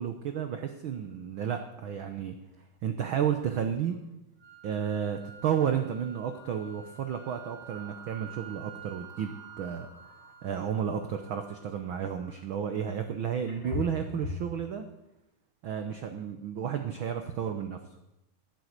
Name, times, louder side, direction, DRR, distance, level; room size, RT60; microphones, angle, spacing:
voice 1, 0.0-2.3 2.8-4.0 4.6-9.9 10.4-14.9 15.6-17.8, right 8 dB, 85° right, 7 dB, 1.1 m, -32 dB
sound 1, 3.9-4.0 4.4-4.5 6.3-6.6 7.4-11.7 12.9-13.0 13.5-14.6, left 4 dB, 45° left, 4.4 m, -44 dB
sound 2, 4.4-12.4, right 9 dB, 65° right, 3.2 m, -50 dB
11.5 x 9.6 x 8.1 m, 0.91 s
omnidirectional pair, 3.5 m